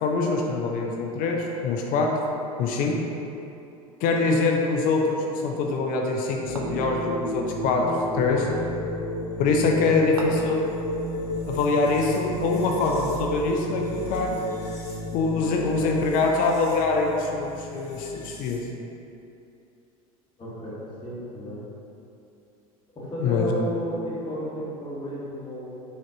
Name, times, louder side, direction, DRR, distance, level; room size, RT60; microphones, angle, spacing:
voice 1, 0.0-2.1 2.6-3.0 4.0-7.8 8.1-8.5 9.4-10.6 11.5-14.4 15.1-18.6 23.2-23.5, left 3 dB, 45° left, 1 dB, 0.5 m, -24 dB
sound 1, 6.4-18.7, left 1 dB, 90° left, 0.7 m, -33 dB
sound 2, 6.6-7.0 8.4-8.7 10.2-10.6, right 3 dB, 80° right, 0.4 m, -38 dB
voice 2, 20.4-21.6 22.9-25.7, equal, 25° left, -7 dB, 1.3 m, -33 dB
3.8 x 3.2 x 2.7 m, 2.8 s
hypercardioid pair, 80°, 19 cm